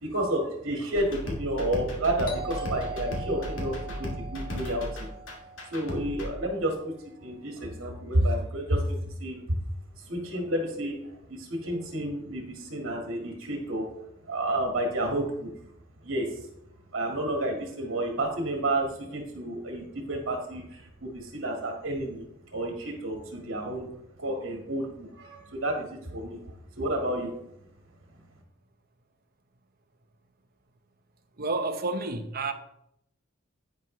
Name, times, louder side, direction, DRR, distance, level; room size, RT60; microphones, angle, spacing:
voice 1, 0.0-5.1 5.7-6.9 7.2-9.4 10.0-11.0 11.3-13.9 14.3-15.5 16.0-16.3 16.9-22.3 22.5-23.9 24.2-26.4 26.8-27.3, right 1 dB, 70° right, 1.8 m, -30 dB
sound 1, 0.9-6.3, equal, 65° left, 2.3 m, -35 dB
Doorbell, 2.2-6.8, right 3 dB, 45° left, 2.5 m, -42 dB
voice 2, 31.4-32.5, right 3 dB, 50° right, 0.9 m, -30 dB
10.5 x 9.4 x 3.2 m
head